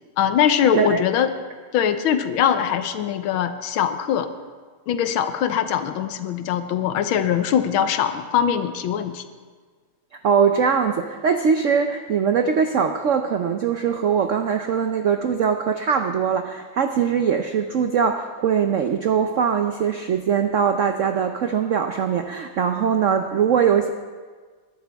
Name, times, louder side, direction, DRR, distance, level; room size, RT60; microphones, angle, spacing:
voice 1, 0.2-1.3 1.7-4.3 4.9-9.2, left 9 dB, 85° left, 10 dB, 1.6 m, -22 dB
voice 2, 10.2-23.9, right 7 dB, 85° right, 6 dB, 0.6 m, -21 dB
21.5 x 12.0 x 3.5 m, 1.5 s
omnidirectional pair, 2.2 m